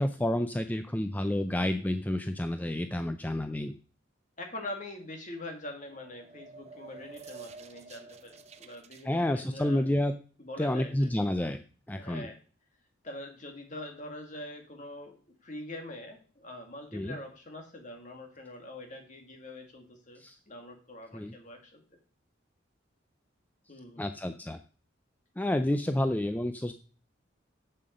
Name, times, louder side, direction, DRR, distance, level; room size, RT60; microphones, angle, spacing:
voice 1, 0.0-3.7 9.0-10.1 10.6-11.6 11.9-12.3 16.9-17.2 20.2-20.4 21.1-21.3 24.0-24.6 25.4-26.7, left 1 dB, 10° left, 8 dB, 0.4 m, -29 dB
voice 2, 4.4-9.8 10.4-11.1 12.0-12.4 13.0-21.8 23.7-24.1, left 1 dB, 40° left, 3 dB, 2.2 m, -44 dB
sound 1, 5.8-9.0, right 4 dB, 35° right, 0.7 m, -49 dB
7.8 x 7.4 x 5.2 m, 0.40 s
head